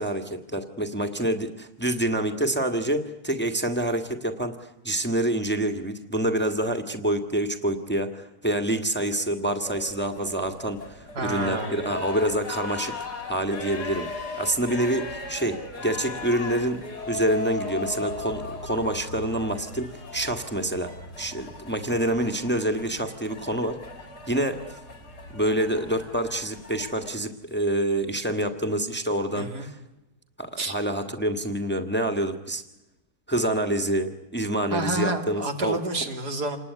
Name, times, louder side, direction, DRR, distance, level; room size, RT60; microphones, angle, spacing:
voice 1, 0.0-12.9 13.3-23.8 24.3-24.6 25.3-29.8 30.4-32.6 33.3-35.8, right 1 dB, 5° left, 5 dB, 1.6 m, -27 dB
sound 1, 9.6-27.1, left 3 dB, 90° left, 4.3 m, -37 dB
voice 2, 11.1-11.8 29.3-29.7 30.6-30.8 34.7-36.6, right 2 dB, 80° right, 4 dB, 3.2 m, -29 dB
28.0 x 20.0 x 9.6 m, 0.93 s
omnidirectional pair, 1.7 m